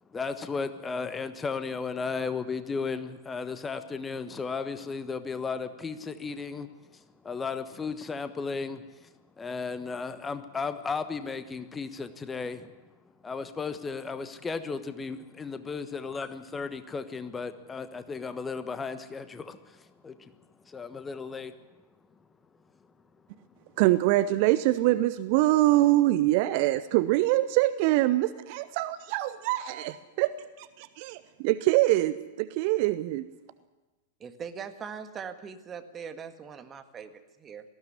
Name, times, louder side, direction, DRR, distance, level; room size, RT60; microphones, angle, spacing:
voice 1, 0.1-9.1 9.4-12.7 13.2-20.3 20.7-21.5, left 5 dB, 15° left, 11 dB, 1.2 m, -35 dB
voice 2, 23.8-30.3 30.6-33.2, right 16 dB, 45° right, 14 dB, 0.7 m, -24 dB
voice 3, 34.2-37.6, right 6 dB, 25° right, 7 dB, 1.8 m, -41 dB
19.0 x 15.0 x 9.8 m, 1.2 s
figure-of-eight pair, 95°, 0 cm